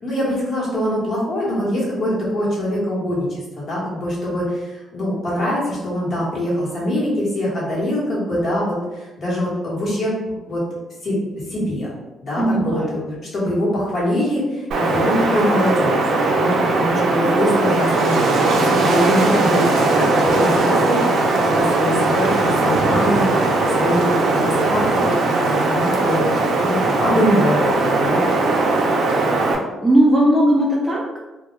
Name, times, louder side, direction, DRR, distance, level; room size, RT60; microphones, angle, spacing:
voice 1, 0.0-10.1 10.5-10.6 11.0-11.9 12.2-16.0 16.4-24.0 24.3-25.1 25.4-26.3 26.6-28.3, equal, 45° left, -5 dB, 1.0 m, -23 dB
voice 2, 12.4-12.9 29.8-31.2, right 1 dB, 5° right, -5 dB, 0.4 m, -17 dB
Wind, 14.7-29.6, right 2 dB, 70° right, 0.4 m, -19 dB
2.2 x 2.1 x 3.0 m, 1.1 s
cardioid pair, 130°, 0 cm